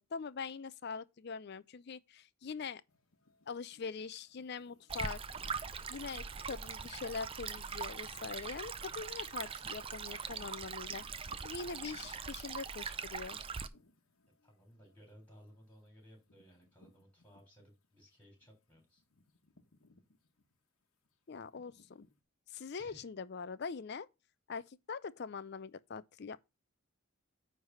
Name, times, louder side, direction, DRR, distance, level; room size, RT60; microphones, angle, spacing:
voice 1, 0.1-2.8 3.5-5.2 5.9-11.1 11.4-13.4 21.3-22.0 22.5-24.1 24.5-26.4, left 5 dB, 50° left, 0.5 m, -43 dB
sound 1, 2.9-18.0 18.4-22.2, left 2 dB, 85° left, 1.2 m, -68 dB
Stream, 4.9-13.7, right 6 dB, 25° right, 0.4 m, -42 dB
voice 2, 14.4-19.0 22.8-23.1, equal, 10° left, 3.7 m, -60 dB
9.5 x 3.4 x 5.5 m
head